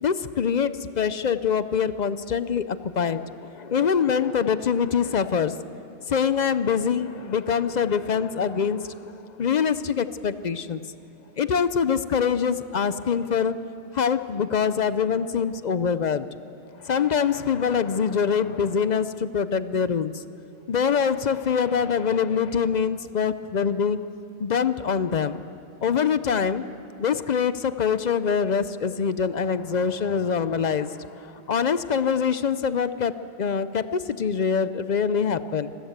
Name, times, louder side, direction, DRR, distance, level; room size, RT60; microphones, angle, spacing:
voice 1, 0.0-5.6 6.1-10.8 11.4-13.5 13.9-16.3 16.8-20.2 20.7-24.0 24.4-25.5 25.8-26.6 27.0-35.7, left 6 dB, 50° left, 13 dB, 0.6 m, -24 dB
26.0 x 14.5 x 8.1 m, 2.7 s
omnidirectional pair, 1.2 m